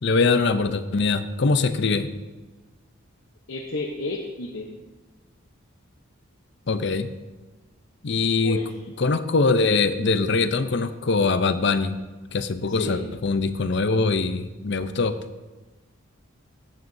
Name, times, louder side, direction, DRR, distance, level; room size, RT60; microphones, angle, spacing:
voice 1, 0.0-2.1 6.7-7.1 8.0-8.6 9.0-12.0 12.3-15.2, left 4 dB, 55° left, 11 dB, 0.6 m, -22 dB
voice 2, 3.5-4.7 8.4-8.7 12.7-13.1, left 2 dB, 70° left, 0 dB, 0.9 m, -31 dB
14.5 x 9.3 x 2.7 m, 1.2 s
head